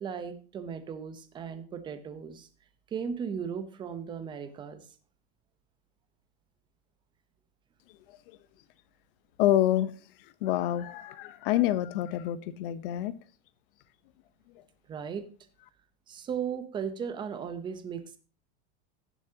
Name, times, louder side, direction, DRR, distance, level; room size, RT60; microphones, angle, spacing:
voice 1, 0.0-2.5 2.9-4.9 14.9-15.2 16.1-18.2, right 7 dB, 15° right, 11 dB, 0.7 m, -36 dB
voice 2, 9.4-9.9 10.4-13.1, left 13 dB, 65° left, 15 dB, 0.9 m, -27 dB
17.5 x 7.1 x 2.8 m, 0.37 s
supercardioid pair, 180°, 30 cm